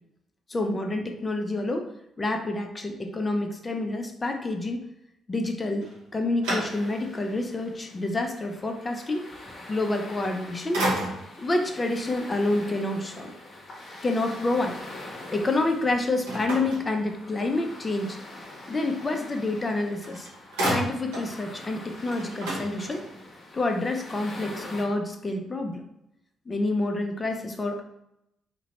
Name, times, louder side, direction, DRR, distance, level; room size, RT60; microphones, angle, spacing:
voice 1, 0.5-4.9 5.3-9.3 9.7-10.9 11.4-13.3 13.8-14.8 15.3-18.3 18.7-20.3 20.7-23.0 23.5-25.8 26.5-27.8, left 2 dB, 30° left, 4 dB, 0.4 m, -28 dB
sound 1, 5.8-7.2 7.7-7.8 10.1-10.4 10.7-11.5 16.3-17.5 19.6-19.7 20.0-21.3 21.7-21.8 22.0-23.3, right 1 dB, 75° right, 0.8 m, -31 dB
sound 2, 6.7-24.8, left 1 dB, 50° left, 0.7 m, -44 dB
2.8 x 2.1 x 2.8 m, 0.83 s
figure-of-eight pair, 40°, 0 cm